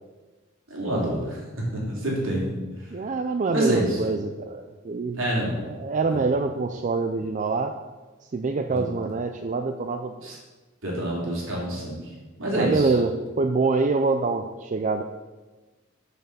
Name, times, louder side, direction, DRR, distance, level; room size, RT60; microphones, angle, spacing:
voice 1, 0.7-1.4 1.7-2.6 3.5-4.0 5.1-5.6 6.1-6.2 8.7-8.8 10.2-10.3 10.8-12.0 12.4-12.9, right 1 dB, 70° right, -4 dB, 3.3 m, -27 dB
voice 2, 2.9-5.2 5.6-7.7 8.3-10.3 12.5-15.0, right 3 dB, 40° right, 6 dB, 0.4 m, -25 dB
7.4 x 5.7 x 6.7 m, 1.3 s
head